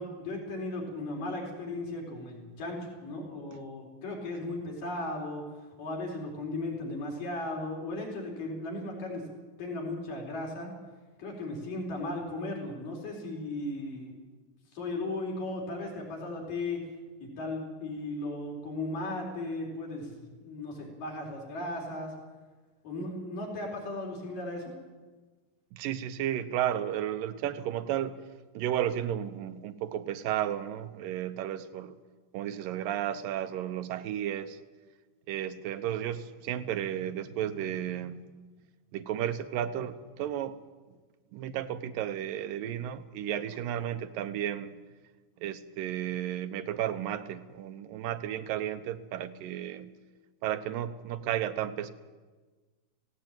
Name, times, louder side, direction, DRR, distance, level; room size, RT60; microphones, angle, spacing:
voice 1, 0.0-5.4 5.8-9.2 9.6-10.7 11.2-14.1 14.7-16.9 17.2-22.1 22.8-24.7, left 2 dB, 80° left, -1 dB, 5.9 m, -36 dB
voice 2, 25.7-28.2 28.5-31.9 32.3-34.6 35.3-38.2 38.9-40.6 41.3-44.7 45.4-49.9 50.4-51.9, right 11 dB, 85° right, 10 dB, 2.6 m, -33 dB
17.5 x 16.5 x 9.0 m, 1.3 s
omnidirectional pair, 3.9 m